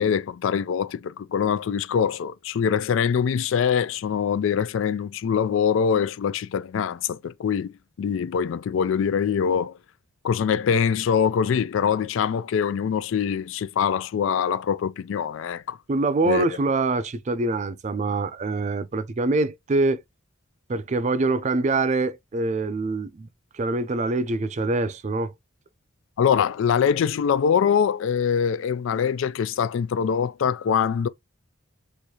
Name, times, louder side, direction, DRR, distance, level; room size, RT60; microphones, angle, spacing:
voice 1, 0.0-9.8 10.2-15.8 16.2-16.4 26.2-31.1, left 7 dB, 70° left, 0.3 m, -23 dB
voice 2, 15.9-20.0 20.7-23.3 23.5-25.3, right 2 dB, 35° right, 0.4 m, -24 dB
6.3 x 2.6 x 2.8 m
head